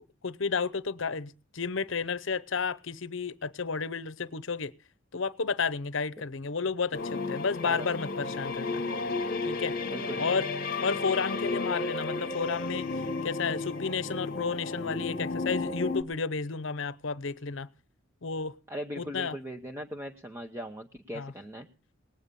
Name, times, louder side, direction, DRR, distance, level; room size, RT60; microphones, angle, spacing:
voice 1, 0.2-4.7 5.1-8.8 9.5-9.8 10.2-10.5 10.8-12.9 13.2-17.7 18.2-18.5 19.0-19.4 21.1-21.3, left 5 dB, 65° left, 0.7 m, -32 dB
sound 1, 6.9-16.0, left 3 dB, 45° left, 1.3 m, -33 dB
voice 2, 9.9-10.4 18.7-21.7, equal, 10° right, 0.9 m, -39 dB
19.0 x 9.0 x 6.8 m
head